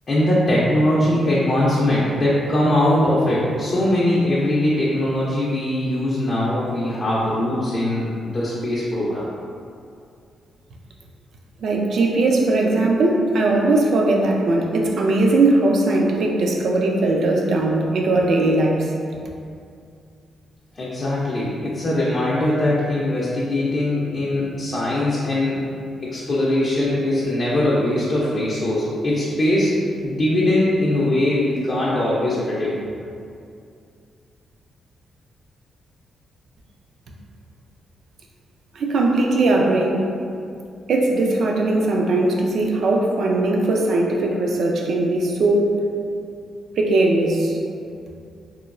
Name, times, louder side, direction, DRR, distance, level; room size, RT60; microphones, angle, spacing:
voice 1, 0.1-9.3 20.7-25.7 26.0-29.7 30.0-32.7, left 1 dB, 40° left, -7 dB, 0.4 m, -21 dB
voice 2, 11.6-18.9 38.7-40.0 40.9-45.7 46.8-47.6, right 2 dB, 65° right, 0 dB, 0.3 m, -19 dB
3.0 x 2.2 x 2.4 m, 2.4 s
cardioid pair, 100°, 0 cm